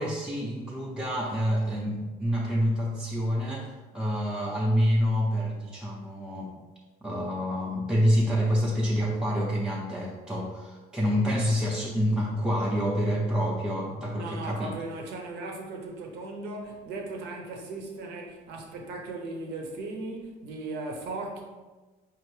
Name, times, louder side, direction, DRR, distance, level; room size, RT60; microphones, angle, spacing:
voice 1, 0.0-6.5 7.0-14.7, equal, 5° right, -5 dB, 0.5 m, -27 dB
voice 2, 14.1-21.4, right 2 dB, 80° right, 1 dB, 0.8 m, -37 dB
4.8 x 2.5 x 3.2 m, 1.3 s
cardioid pair, 110°, 17 cm